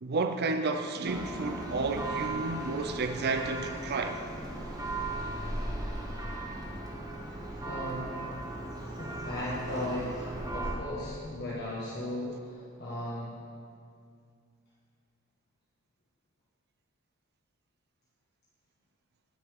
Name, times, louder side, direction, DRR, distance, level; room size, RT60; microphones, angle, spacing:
voice 1, 0.0-4.2, right 3 dB, 50° right, 0.5 m, -31 dB
Church bell, 1.0-10.7, right 2 dB, 20° right, 1.2 m, -37 dB
voice 2, 7.7-8.2 9.0-13.4, left 1 dB, 50° left, 1.6 m, -37 dB
16.0 x 6.9 x 3.7 m
head